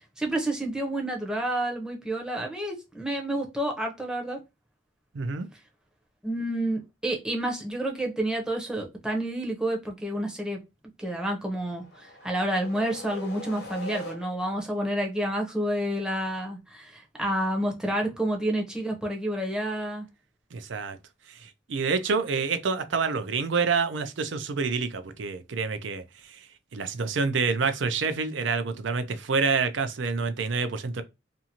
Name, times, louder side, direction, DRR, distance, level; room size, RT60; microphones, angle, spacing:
voice 1, 0.2-4.4 6.2-10.6 11.0-20.1, right 1 dB, 5° right, 0.6 m, -29 dB
voice 2, 5.1-5.5 20.5-21.0 21.3-26.5 26.7-31.0, right 4 dB, 85° right, 0.5 m, -28 dB
sound 1, 11.6-14.7, left 1 dB, 55° left, 0.8 m, -42 dB
2.6 x 2.5 x 2.8 m
head